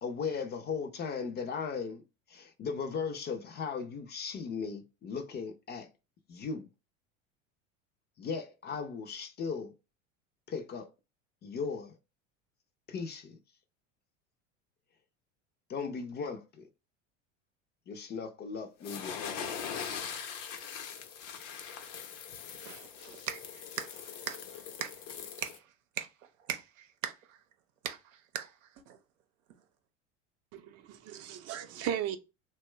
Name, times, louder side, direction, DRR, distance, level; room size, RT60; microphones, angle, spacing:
voice 1, 0.0-2.0 2.3-5.9 6.3-6.7 8.2-9.7 10.5-10.9 11.4-11.9 12.9-13.4 15.7-16.7 17.9-19.7, left 5 dB, 25° left, 0.4 m, -37 dB
sound 1, 18.8-25.6, left 7 dB, 75° left, 0.7 m, -41 dB
voice 2, 22.6-24.0 24.3-24.9 25.4-25.5 26.0-26.1 26.5-27.4 27.8-28.0 28.3-28.5 28.9-29.0, right 9 dB, 80° right, 0.7 m, -39 dB
voice 3, 30.5-32.2, right 10 dB, 40° right, 0.6 m, -36 dB
2.9 x 2.2 x 3.2 m
hypercardioid pair, 90°, 38 cm